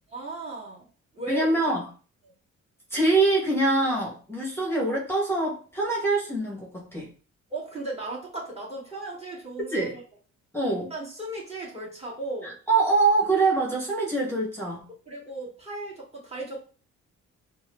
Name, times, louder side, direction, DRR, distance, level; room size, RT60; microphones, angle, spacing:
voice 1, 0.1-0.9 1.1-1.5 7.5-10.0 10.9-12.6 15.1-16.6, right 2 dB, 20° right, -5 dB, 1.6 m, -36 dB
voice 2, 1.3-1.9 2.9-7.1 9.7-10.0 10.5-10.9 12.4-14.9, right 3 dB, 10° left, -3 dB, 0.9 m, -24 dB
4.5 x 2.0 x 2.2 m, 0.39 s
cardioid pair, 90°, 30 cm